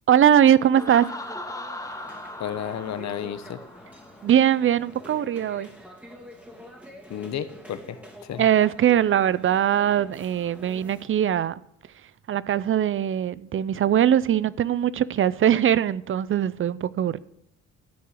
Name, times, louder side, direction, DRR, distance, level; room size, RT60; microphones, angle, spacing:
voice 1, 0.1-1.1 4.2-5.7 8.4-11.5 12.3-17.2, right 10 dB, 45° right, 0.5 m, -21 dB
sound 1, 0.6-11.1, equal, 5° right, 2.5 m, -46 dB
Laughter, 0.8-4.5, left 1 dB, 10° left, 1.6 m, -39 dB
voice 2, 2.4-3.6 7.1-8.5, left 9 dB, 65° left, 1.1 m, -32 dB
13.5 x 4.7 x 8.3 m
cardioid pair, 90°, 30 cm